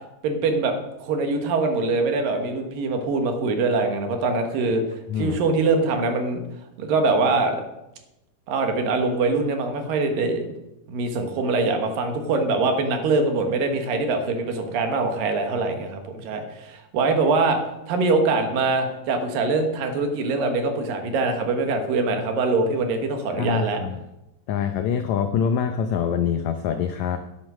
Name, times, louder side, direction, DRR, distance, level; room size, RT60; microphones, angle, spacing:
voice 1, 0.2-0.7 1.0-4.8 5.2-6.4 6.8-7.6 8.5-10.5 10.9-17.6 17.9-23.8, right 3 dB, 75° right, 5 dB, 3.1 m, -23 dB
voice 2, 23.3-24.0 24.5-27.2, left 7 dB, 90° left, 8 dB, 1.6 m, -25 dB
10.5 x 9.4 x 6.3 m, 0.93 s
omnidirectional pair, 4.2 m